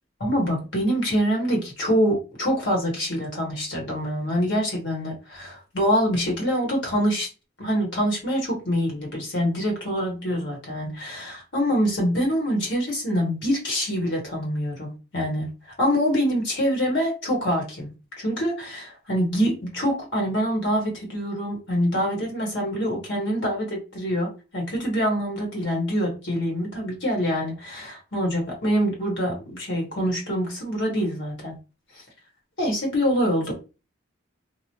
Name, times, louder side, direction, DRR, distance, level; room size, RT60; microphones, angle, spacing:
voice 1, 0.2-7.3 7.6-15.5 15.8-17.9 18.2-31.5 32.6-33.5, equal, 65° left, -1 dB, 1.3 m, -25 dB
2.9 x 2.0 x 2.8 m, 0.30 s
head